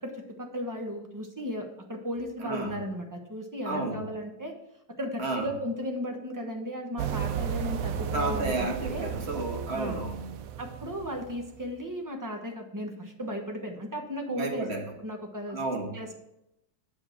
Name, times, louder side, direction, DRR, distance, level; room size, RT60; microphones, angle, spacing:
voice 1, 0.0-4.5 5.0-9.1 9.7-10.0 10.6-14.7 15.0-15.6 15.9-16.1, equal, 15° right, 2 dB, 0.9 m, -35 dB
voice 2, 2.4-2.8 3.6-4.0 5.2-5.5 8.1-10.3 14.3-14.8 15.5-15.9, right 2 dB, 35° right, 1 dB, 1.7 m, -31 dB
sound 1, 7.0-11.7, right 8 dB, 70° right, 0.8 m, -34 dB
8.3 x 5.8 x 5.8 m, 0.85 s
omnidirectional pair, 1.9 m